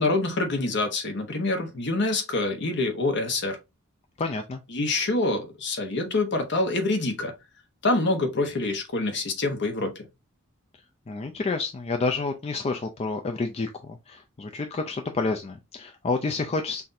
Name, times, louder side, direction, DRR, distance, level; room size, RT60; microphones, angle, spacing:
voice 1, 0.0-3.6 4.7-7.3 7.8-10.1, left 2 dB, 55° left, 1.0 m, -26 dB
voice 2, 4.2-4.6 11.1-16.8, left 3 dB, 30° left, 0.4 m, -29 dB
5.8 x 2.6 x 2.6 m
head